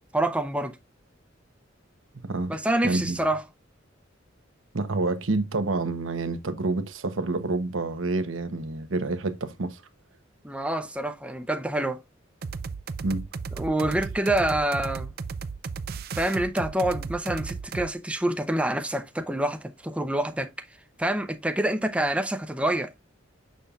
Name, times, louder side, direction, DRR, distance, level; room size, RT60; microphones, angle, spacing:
voice 1, 0.1-0.8 2.5-3.4 10.4-12.0 13.6-15.1 16.2-20.5 21.0-22.9, right 1 dB, 5° right, 0.6 m, -27 dB
voice 2, 2.1-2.6 2.8-3.2 4.7-9.8 13.0-13.3, right 2 dB, 85° right, 1.0 m, -28 dB
sound 1, 12.4-17.9, right 5 dB, 50° right, 0.5 m, -35 dB
6.8 x 6.5 x 2.4 m
head